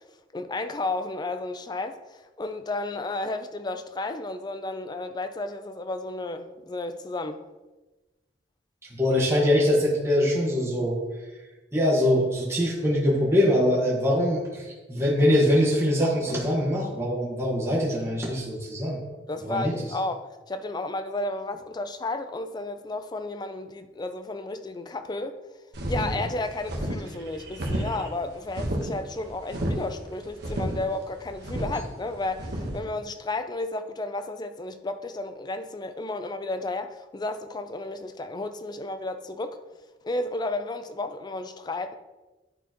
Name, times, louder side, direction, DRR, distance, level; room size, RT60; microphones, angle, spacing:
voice 1, 0.3-7.4 19.3-25.4 25.9-39.6 40.0-41.9, left 2 dB, 25° left, 0.4 m, -32 dB
voice 2, 9.0-11.0 11.7-19.0 19.4-19.7, equal, 15° right, 1.5 m, -23 dB
sound 1, 25.7-32.8, right 1 dB, 65° right, 1.2 m, -31 dB
11.0 x 4.3 x 2.9 m
head